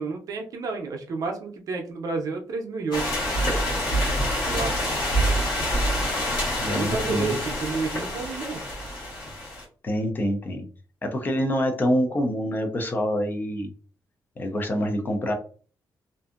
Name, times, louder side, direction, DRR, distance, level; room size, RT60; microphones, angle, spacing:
voice 1, 0.0-3.0 4.5-4.8 6.7-8.6, right 4 dB, 55° right, 3 dB, 0.6 m, -30 dB
sound 1, 2.9-9.6, equal, 80° left, 1.2 m, -26 dB
voice 2, 6.6-7.4 9.8-10.7 11.0-13.7 14.4-15.3, equal, 25° left, 5 dB, 0.4 m, -26 dB
2.6 x 2.5 x 2.4 m, 0.41 s
wide cardioid pair, 175°, 7 cm